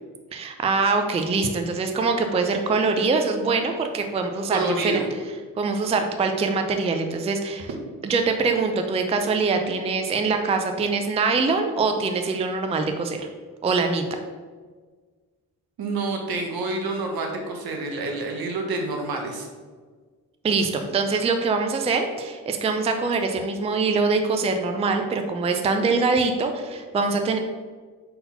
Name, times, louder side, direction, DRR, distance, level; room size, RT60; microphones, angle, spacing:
voice 1, 0.3-5.0 5.6-7.7 8.0-13.3 13.6-14.1 20.4-27.4, right 4 dB, 20° right, 5 dB, 0.3 m, -23 dB
voice 2, 4.5-5.1 15.8-19.5, right 2 dB, 80° right, 2 dB, 1.1 m, -28 dB
4.2 x 4.0 x 5.5 m, 1.5 s
wide cardioid pair, 165°, 36 cm